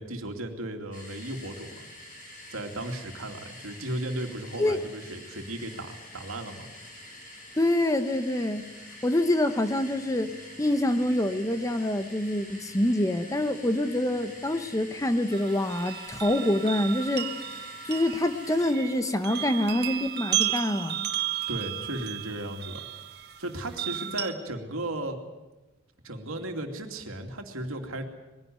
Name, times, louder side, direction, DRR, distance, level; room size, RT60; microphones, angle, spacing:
voice 1, 0.0-1.9 2.5-6.7 21.5-22.9 23.4-25.2 26.0-28.0, right 1 dB, 75° right, 3 dB, 2.7 m, -35 dB
sound 1, 0.9-18.7, left 1 dB, 40° left, 6.8 m, -47 dB
voice 2, 7.6-8.7 9.0-17.3 17.8-21.1, left 1 dB, 15° left, 9 dB, 0.9 m, -26 dB
sound 2, 15.3-24.3, right 11 dB, 50° right, 1.4 m, -34 dB
21.5 x 16.0 x 9.5 m, 1.1 s
head